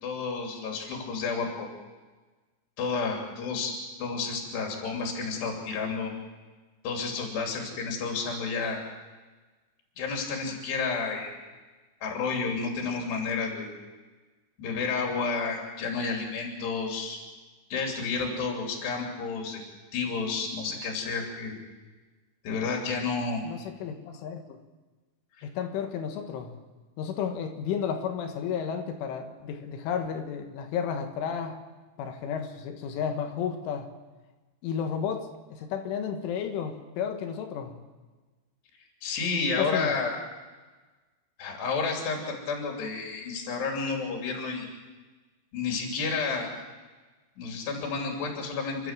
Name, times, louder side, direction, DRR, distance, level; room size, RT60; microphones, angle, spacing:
voice 1, 0.0-1.7 2.8-3.7 4.0-6.1 6.8-8.8 10.0-11.3 12.0-13.7 14.6-17.2 17.7-19.6 19.9-21.6 22.4-23.4 25.4-25.5 39.0-40.1 41.4-44.7 45.5-46.5 47.4-48.9, left 4 dB, 60° left, 1 dB, 5.0 m, -31 dB
voice 2, 23.4-24.6 25.4-26.6 27.0-31.6 32.0-33.9 34.6-37.8 39.6-40.0, left 7 dB, 85° left, 5 dB, 4.0 m, -32 dB
30.0 x 12.5 x 7.5 m, 1.3 s
omnidirectional pair, 5.5 m